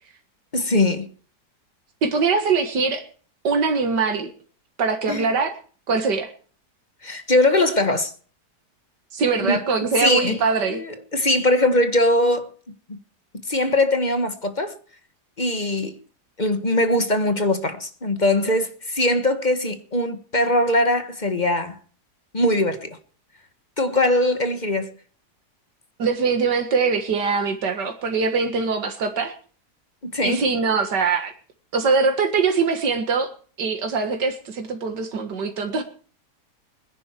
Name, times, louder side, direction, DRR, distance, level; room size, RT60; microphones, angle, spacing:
voice 1, 0.5-1.1 5.1-5.2 7.0-8.1 9.4-9.6 10.0-10.4 10.7-12.5 12.9-13.0 13.5-14.8 15.4-15.9 16.4-21.7 22.3-23.0 23.8-24.9 30.0-30.4, left 1 dB, 30° left, 1.5 m, -21 dB
voice 2, 2.0-3.0 3.4-4.3 4.8-5.5 5.9-6.3 9.1-10.8 26.0-29.3 30.2-31.3 31.7-33.3 33.6-35.8, right 4 dB, 90° right, 2.3 m, -22 dB
22.0 x 10.5 x 4.5 m
omnidirectional pair, 1.8 m